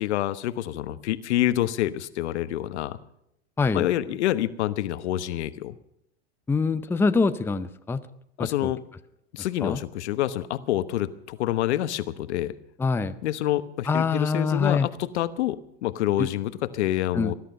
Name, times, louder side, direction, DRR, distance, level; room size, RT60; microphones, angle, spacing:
voice 1, 0.0-3.0 3.7-5.7 8.4-8.8 9.3-12.5 13.2-17.3, left 13 dB, 75° left, 13 dB, 1.1 m, -27 dB
voice 2, 6.5-8.0 8.4-8.7 9.6-9.8 12.8-13.2 13.9-14.9 16.2-16.3 17.1-17.3, left 4 dB, 5° left, 10 dB, 0.6 m, -24 dB
20.0 x 12.0 x 5.5 m, 0.76 s
hypercardioid pair, 120°, 34 cm